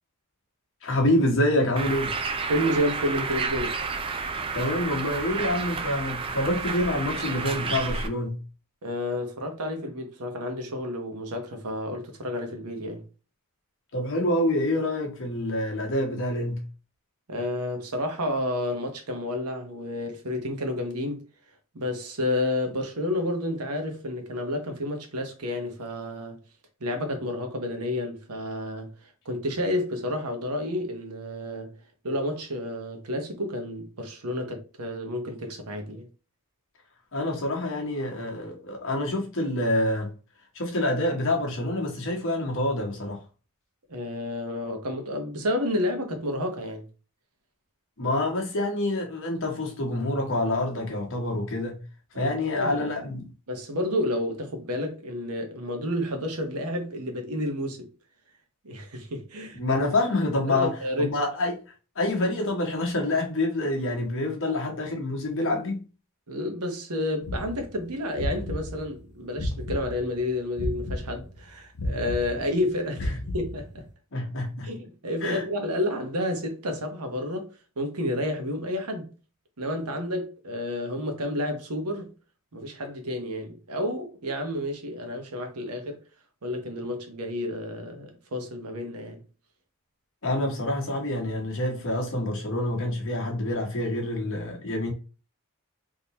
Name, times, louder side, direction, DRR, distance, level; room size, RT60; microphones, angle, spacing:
voice 1, 0.8-2.2 4.5-8.4 13.9-16.6 37.1-40.1 40.5-43.2 48.0-51.8 52.2-53.3 59.5-60.7 61.0-61.6 62.0-65.8 74.1-74.7 75.2-75.4 90.2-94.9, left 1 dB, 60° left, 1.1 m, -27 dB
Bird, 1.8-8.1, right 4 dB, 25° right, 0.4 m, -31 dB
voice 2, 2.5-3.8 8.8-13.0 17.3-21.2 21.7-26.4 26.8-31.8 32.0-36.1 43.9-46.8 52.1-52.9 53.5-57.9 58.6-59.6 60.5-61.2 64.4-64.5 66.3-73.9 74.6-79.1 79.6-82.1 82.5-86.0 86.4-89.2, left 1 dB, 90° right, 1.0 m, -30 dB
sound 1, 67.2-70.2 70.6-73.9, left 1 dB, 80° left, 0.9 m, -33 dB
3.7 x 2.8 x 2.9 m
head